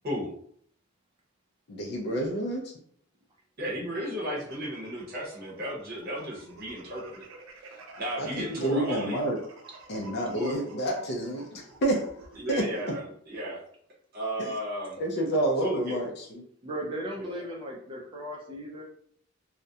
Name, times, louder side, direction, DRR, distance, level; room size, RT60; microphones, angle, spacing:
voice 1, 1.7-2.7 8.2-9.4 9.9-12.0 12.5-12.7 14.4-14.5 15.0-16.4, right 1 dB, 50° left, -1 dB, 0.4 m, -29 dB
voice 2, 3.6-7.3 8.0-9.2 10.3-10.5 12.4-13.6 14.1-15.0 15.6-16.0 17.2-17.4, equal, 45° right, -5 dB, 0.7 m, -34 dB
sound 1, 4.4-13.0, right 3 dB, 80° right, 0.5 m, -50 dB
voice 3, 16.6-18.8, right 1 dB, 25° right, -1 dB, 0.4 m, -37 dB
2.3 x 2.1 x 2.6 m, 0.64 s
head